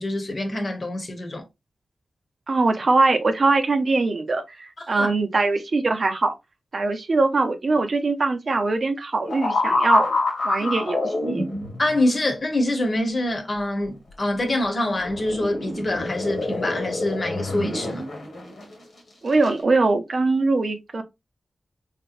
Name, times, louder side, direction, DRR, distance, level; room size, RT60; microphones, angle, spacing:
voice 1, 0.0-1.4 5.0-5.1 11.8-18.0, left 1 dB, 50° left, 1.0 m, -25 dB
voice 2, 2.5-6.3 6.7-10.2 10.4-11.4 19.2-21.0, right 3 dB, 60° right, 0.6 m, -22 dB
sound 1, 9.3-12.0 14.8-18.7 19.3-19.5, left 2 dB, 85° left, 1.3 m, -26 dB
3.3 x 2.9 x 2.5 m
cardioid pair, 55°, 0 cm